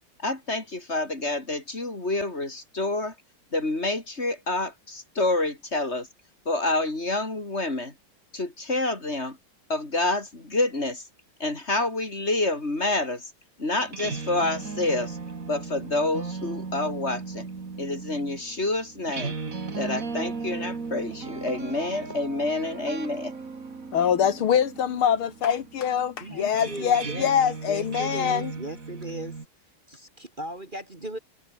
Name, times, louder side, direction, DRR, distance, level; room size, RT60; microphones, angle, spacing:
voice 1, 0.2-3.1 3.5-6.1 6.4-7.9 8.3-9.4 9.7-11.0 11.4-13.3 13.6-15.2 15.5-17.5 17.8-19.4 19.7-23.4, left 2 dB, 30° left, 4.7 m, -28 dB
sound 1, 13.8-29.5, right 4 dB, 40° right, 2.8 m, -37 dB
voice 2, 23.9-28.5, left 8 dB, 75° left, 2.3 m, -24 dB
voice 3, 26.2-29.4 29.9-31.2, right 1 dB, 25° right, 2.4 m, -38 dB
omnidirectional pair, 2.3 m